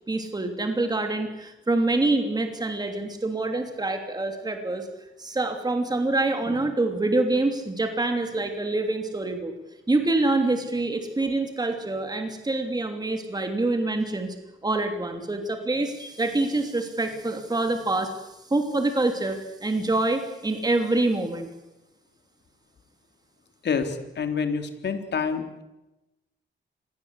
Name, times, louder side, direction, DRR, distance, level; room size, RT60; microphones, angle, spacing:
voice 1, 0.1-4.9 5.2-9.5 9.9-14.3 14.6-21.5, right 2 dB, 20° right, 5 dB, 3.0 m, -26 dB
voice 2, 23.6-25.6, left 5 dB, 60° left, 6 dB, 3.8 m, -28 dB
28.5 x 22.0 x 8.2 m, 1.0 s
wide cardioid pair, 120°, 20 cm